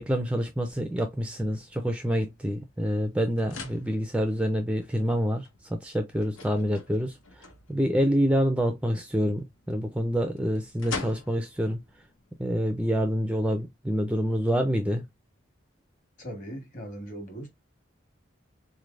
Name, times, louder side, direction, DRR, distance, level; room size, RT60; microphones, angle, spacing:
voice 1, 0.0-11.8 12.4-15.0, equal, 5° right, 0.3 m, -27 dB
sound 1, 0.7-13.6, left 4 dB, 85° left, 0.9 m, -46 dB
voice 2, 16.2-17.5, right 1 dB, 40° left, 1.5 m, -39 dB
3.8 x 3.2 x 2.4 m
head